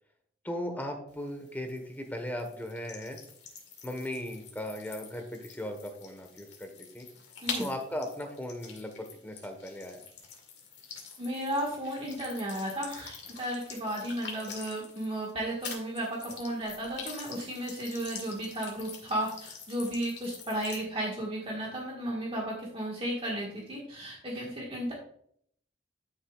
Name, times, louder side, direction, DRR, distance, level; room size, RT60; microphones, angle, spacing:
voice 1, 0.4-3.2 3.8-7.1 7.6-10.0, left 1 dB, 10° left, 4 dB, 1.2 m, -37 dB
sound 1, 1.1-15.3 15.6-20.8, left 5 dB, 65° left, 2.1 m, -45 dB
voice 2, 11.2-24.9, right 1 dB, 30° right, -3 dB, 1.6 m, -34 dB
11.5 x 6.7 x 2.4 m, 0.64 s
head